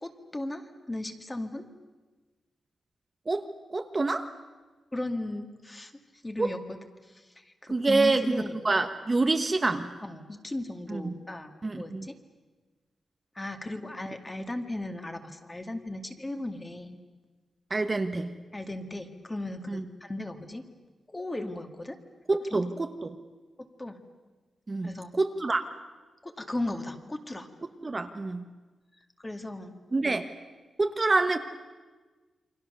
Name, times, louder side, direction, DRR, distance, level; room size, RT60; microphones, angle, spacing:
voice 1, 0.0-1.6 4.9-5.9 6.2-8.6 10.0-12.2 13.3-17.0 18.5-20.6 21.1-22.0 23.6-24.0 24.8-25.1 26.2-27.5 29.2-29.7, left 1 dB, 15° left, 5 dB, 2.2 m, -36 dB
voice 2, 3.3-4.3 6.4-6.5 7.7-9.9 10.9-11.2 11.6-12.1 17.7-18.3 19.7-19.8 22.3-23.2 24.7-25.7 27.8-28.4 29.9-30.3 30.8-31.4, right 3 dB, 25° right, 6 dB, 1.2 m, -27 dB
29.0 x 24.5 x 6.9 m, 1.3 s
wide cardioid pair, 115°, 0 cm